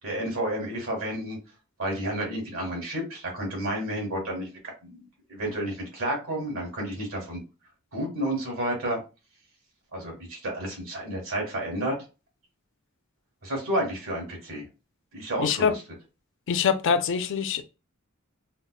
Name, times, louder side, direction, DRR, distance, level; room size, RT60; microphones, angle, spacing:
voice 1, 0.0-1.4 1.8-7.4 7.9-9.0 9.9-12.0 13.4-14.7 15.1-15.7, right 1 dB, 80° right, 2.0 m, -31 dB
voice 2, 15.4-15.8 16.5-17.6, left 6 dB, 60° left, 0.4 m, -24 dB
5.4 x 2.1 x 2.2 m
head